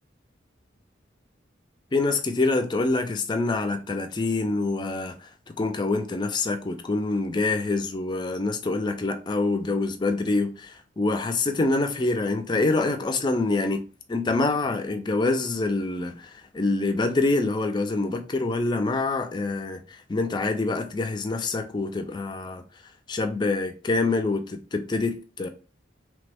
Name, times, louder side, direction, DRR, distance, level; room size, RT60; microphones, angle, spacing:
voice 1, 1.9-5.3 5.6-13.8 14.1-22.6 23.1-25.5, left 3 dB, 25° left, 0.3 m, -26 dB
3.1 x 2.1 x 3.4 m
head